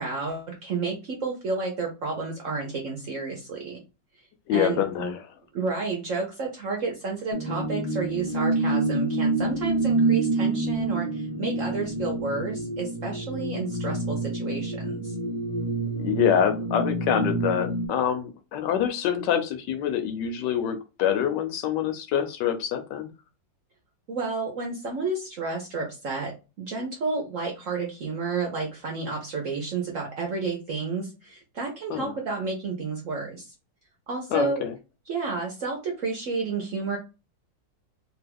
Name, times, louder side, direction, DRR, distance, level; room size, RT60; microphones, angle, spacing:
voice 1, 0.0-3.8 4.5-5.1 5.5-15.1 24.1-26.3 26.6-33.5 34.1-34.6 35.1-37.0, right 4 dB, 65° right, 1 dB, 0.8 m, -31 dB
voice 2, 4.5-5.2 16.0-23.1 31.9-32.1 34.3-34.7, left 9 dB, 75° left, 8 dB, 1.1 m, -26 dB
sound 1, 7.3-17.9, right 2 dB, 20° right, 0.8 m, -27 dB
3.0 x 2.3 x 3.4 m, 0.30 s
omnidirectional pair, 2.0 m